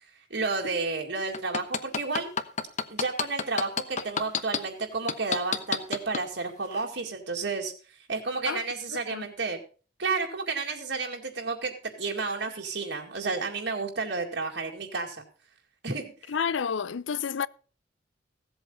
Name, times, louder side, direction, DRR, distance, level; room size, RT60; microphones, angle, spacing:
voice 1, 0.3-2.3 2.9-7.7 8.1-9.6 10.0-15.2 15.8-16.0, right 4 dB, 70° right, 2.2 m, -31 dB
sound 1, 1.3-4.6 5.1-6.2 6.7-6.8, left 6 dB, 40° left, 1.0 m, -28 dB
voice 2, 8.9-9.3 16.3-17.5, left 6 dB, 90° left, 0.6 m, -30 dB
16.0 x 8.1 x 5.4 m
head